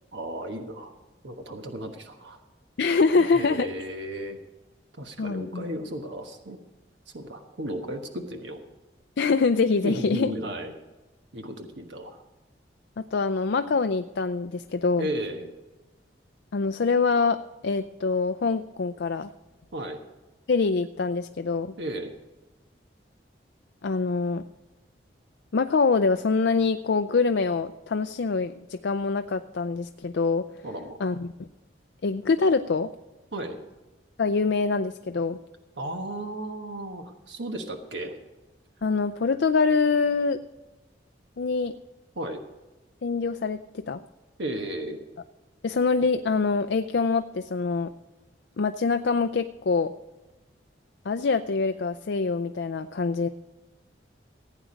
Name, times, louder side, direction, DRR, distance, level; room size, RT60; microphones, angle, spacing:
voice 1, 0.1-0.9 1.2-2.4 3.2-4.4 5.0-6.6 7.1-8.6 9.8-10.7 11.3-12.2 15.0-15.5 19.7-20.0 21.8-22.1 30.6-31.0 33.3-33.6 35.8-38.1 42.1-42.4 44.4-45.0, right 1 dB, 80° right, 5 dB, 1.3 m, -34 dB
voice 2, 2.8-3.7 5.2-5.7 9.2-10.3 13.0-15.1 16.5-19.3 20.5-21.7 23.8-24.4 25.5-30.4 31.0-31.3 32.0-32.9 34.2-35.4 38.8-40.4 41.4-41.7 43.0-44.0 45.6-47.9 48.6-49.9 51.1-53.3, left 4 dB, 75° left, 9 dB, 0.5 m, -25 dB
16.0 x 9.2 x 5.1 m, 1.1 s
head